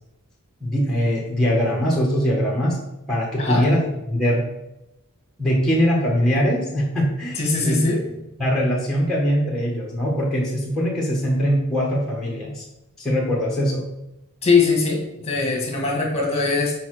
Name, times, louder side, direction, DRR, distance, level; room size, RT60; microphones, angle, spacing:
voice 1, 0.6-2.8 3.1-3.8 4.1-4.4 5.4-7.8 8.4-12.6 13.0-13.9, equal, ahead, -4 dB, 1.6 m, -22 dB
voice 2, 7.4-8.0 14.4-16.7, left 4 dB, 30° left, 0 dB, 2.0 m, -21 dB
6.9 x 5.1 x 4.9 m, 0.92 s
head